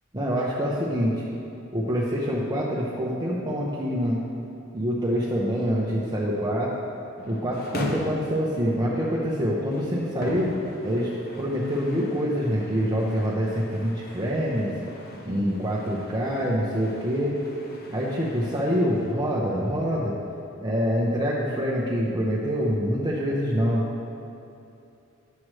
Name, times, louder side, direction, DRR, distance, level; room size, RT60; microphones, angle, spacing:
voice 1, 0.1-1.1 1.7-4.2 4.7-6.7 7.3-10.5 10.8-11.1 11.4-14.8 15.2-17.4 17.9-20.2 20.6-23.8, equal, 20° right, -6 dB, 0.8 m, -25 dB
sound 1, 7.2-19.1, left 1 dB, 50° left, 0.9 m, -41 dB
10.5 x 7.5 x 3.2 m, 2.8 s
head